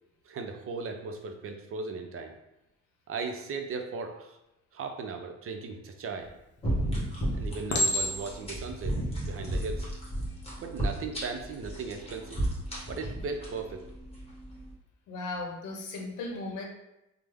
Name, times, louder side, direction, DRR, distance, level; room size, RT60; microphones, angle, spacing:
voice 1, 0.2-2.3 3.1-4.4 4.7-6.3 7.3-9.9 10.6-12.4 12.9-13.8, right 4 dB, 45° right, 5 dB, 0.5 m, -37 dB
Chink clink, 6.2-6.7 7.7-8.5 9.2-9.5, left 1 dB, 40° left, 0.7 m, -29 dB
sound 1, 6.6-14.7, right 1 dB, 20° left, 1.2 m, -33 dB
voice 2, 15.1-16.7, left 2 dB, 80° left, 2 dB, 0.7 m, -36 dB
3.2 x 2.0 x 3.4 m, 0.92 s
cardioid pair, 90°, 30 cm